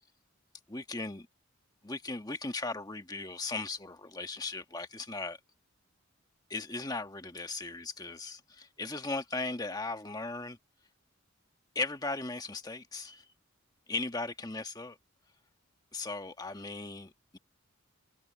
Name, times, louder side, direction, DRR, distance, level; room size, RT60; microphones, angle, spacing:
voice 1, 0.7-1.3 1.8-5.4 6.5-10.6 11.7-13.3 13.9-15.0 15.9-17.4, left 3 dB, 20° left, 1.4 m, -37 dB
head